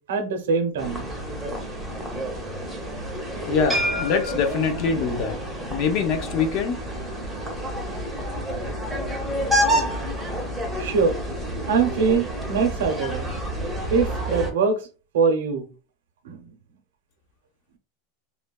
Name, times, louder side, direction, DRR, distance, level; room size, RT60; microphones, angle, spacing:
voice 1, 0.1-1.1 10.8-11.2 11.7-13.3 13.9-14.8 15.1-15.6 16.2-16.5, right 5 dB, 90° right, 0.7 m, -23 dB
sound 1, 0.8-14.5, equal, 5° right, 0.6 m, -29 dB
voice 2, 3.5-5.4 5.7-6.8, left 5 dB, 40° left, 0.6 m, -24 dB
3.1 x 2.1 x 2.3 m
supercardioid pair, 165°, 0 cm